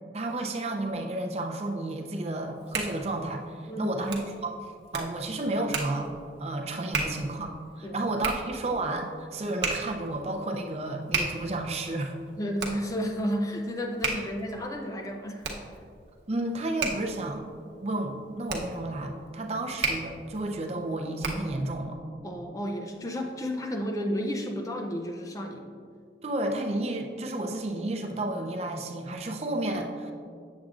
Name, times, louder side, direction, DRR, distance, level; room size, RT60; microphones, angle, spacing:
voice 1, 0.1-4.5 4.9-6.1 6.4-12.2 16.3-17.5 17.8-22.0 26.2-30.1, right 2 dB, 35° right, 3 dB, 0.5 m, -31 dB
Hands, 2.3-21.6, right 4 dB, 70° right, 0.9 m, -36 dB
voice 2, 3.7-4.1 7.8-8.0 12.4-15.5 22.2-25.8, equal, 20° left, 3 dB, 0.4 m, -32 dB
7.7 x 7.2 x 2.5 m, 2.2 s
head